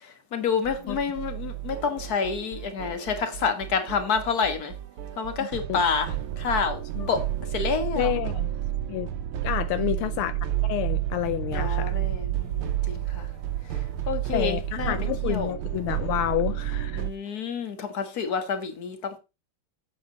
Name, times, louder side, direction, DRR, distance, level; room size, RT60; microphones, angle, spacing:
voice 1, 0.0-4.7 5.2-6.8 7.1-7.2 7.5-8.1 9.8-10.0 11.5-13.3 13.7-13.8 14.1-14.9 15.2-15.5 17.0-19.2, left 5 dB, 45° left, 1.9 m, -28 dB
sound 1, 0.6-17.1, right 12 dB, 75° right, 1.7 m, -31 dB
voice 2, 5.4-5.8 7.0-7.1 8.0-8.5 8.9-9.1 9.4-10.4 10.7-12.0 14.3-17.0, left 13 dB, 80° left, 1.5 m, -29 dB
8.6 x 7.9 x 4.0 m
omnidirectional pair, 2.4 m